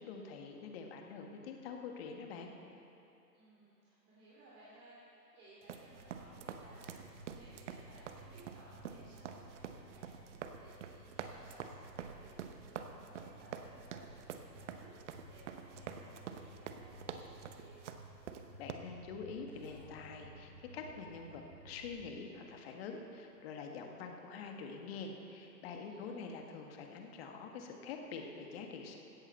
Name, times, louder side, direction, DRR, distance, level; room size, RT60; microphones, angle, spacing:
voice 1, 0.0-2.5 18.6-29.0, left 5 dB, 35° left, 3 dB, 1.6 m, -46 dB
voice 2, 3.3-17.8 25.7-26.3, right 1 dB, 30° right, -7 dB, 2.9 m, -60 dB
sound 1, 5.6-18.7, right 8 dB, 45° right, 1.0 m, -47 dB
sound 2, 5.9-22.2, right 2 dB, 85° right, 2.9 m, -56 dB
sound 3, 19.5-24.2, left 1 dB, 5° left, 2.8 m, -66 dB
17.0 x 13.0 x 4.4 m, 2.9 s
figure-of-eight pair, 120°, 49 cm